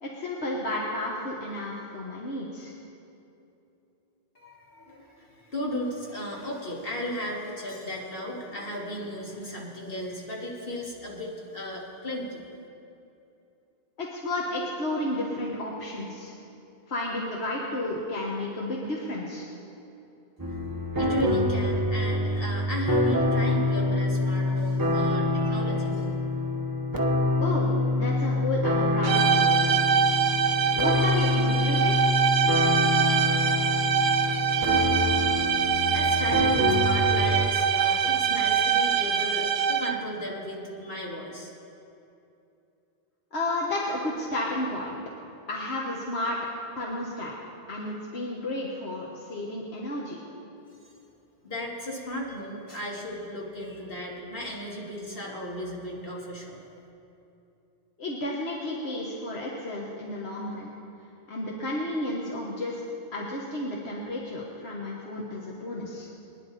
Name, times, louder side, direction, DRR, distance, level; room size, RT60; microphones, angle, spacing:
voice 1, 0.0-2.7 14.0-16.3 16.9-19.4 27.4-27.7 27.9-29.5 30.7-32.1 43.3-45.0 45.5-46.4 46.7-47.3 47.7-50.2 58.0-60.7 61.3-62.8 63.1-66.1, left 1 dB, 80° left, -3 dB, 1.7 m, -32 dB
voice 2, 4.3-12.4 21.0-26.3 35.3-41.5 51.4-56.6, left 1 dB, 60° left, -3 dB, 2.7 m, -35 dB
sound 1, 20.4-37.5, left 1 dB, 20° right, 1.0 m, -26 dB
sound 2, 29.0-40.1, right 7 dB, 55° right, 0.8 m, -24 dB
24.5 x 10.0 x 4.2 m, 2.8 s
omnidirectional pair, 1.1 m